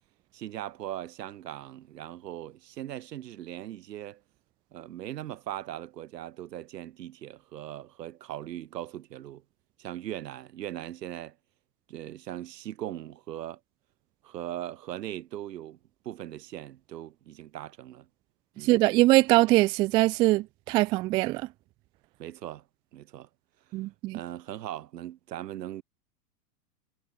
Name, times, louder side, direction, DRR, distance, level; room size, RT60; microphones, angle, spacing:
voice 1, 0.3-4.2 4.7-9.4 9.8-11.3 11.9-13.6 14.2-15.8 16.0-18.1 18.6-18.8 22.2-22.6 22.9-23.3 24.1-25.8, right 12 dB, 75° right, 5.1 m, -39 dB
voice 2, 18.6-21.5 23.7-24.2, right 19 dB, 10° right, 0.4 m, -22 dB
supercardioid pair, 150°, 49 cm